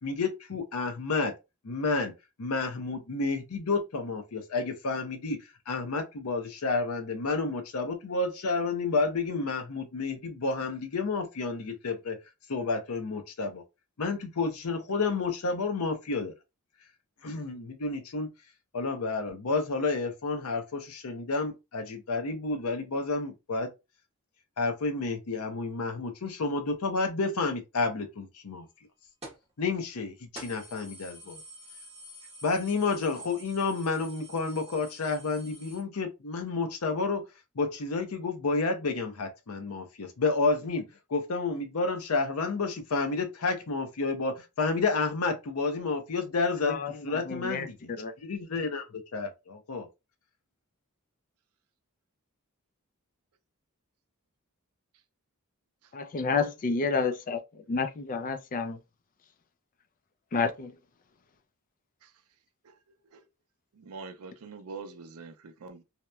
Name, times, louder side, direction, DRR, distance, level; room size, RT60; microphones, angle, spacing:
voice 1, 0.0-1.3 1.6-2.1 2.4-5.4 5.7-12.2 12.5-13.6 14.0-16.3 17.2-18.3 18.7-23.7 24.6-28.7 29.6-31.4 32.4-37.2 37.6-40.8 41.1-46.8 47.0-47.9 48.2-49.9, left 3 dB, 75° left, 0.6 m, -30 dB
sound 1, 29.2-29.5 29.9-30.0 30.3-35.8, right 1 dB, 30° right, 0.9 m, -48 dB
voice 2, 46.6-47.7 48.0-48.1 55.9-58.8 60.3-60.7, left 4 dB, 40° left, 0.4 m, -30 dB
voice 3, 63.7-65.8, right 4 dB, 75° right, 0.5 m, -44 dB
2.8 x 2.1 x 2.2 m
head